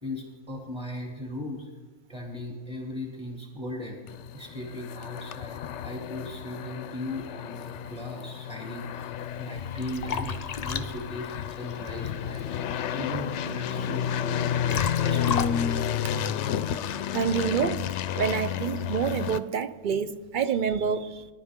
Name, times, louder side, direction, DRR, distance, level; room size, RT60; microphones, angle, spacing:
voice 1, 0.0-1.7 2.1-4.0 4.3-15.5 16.3-16.4, left 1 dB, 20° right, -2 dB, 2.6 m, -38 dB
sound 1, 4.1-19.4, left 9 dB, 70° left, 0.9 m, -31 dB
Liquid, 9.2-16.9, left 6 dB, 45° left, 0.5 m, -36 dB
voice 2, 17.1-17.9 18.1-21.3, right 7 dB, 50° right, 12 dB, 0.7 m, -27 dB
22.5 x 11.0 x 3.7 m, 1.3 s
omnidirectional pair, 1.3 m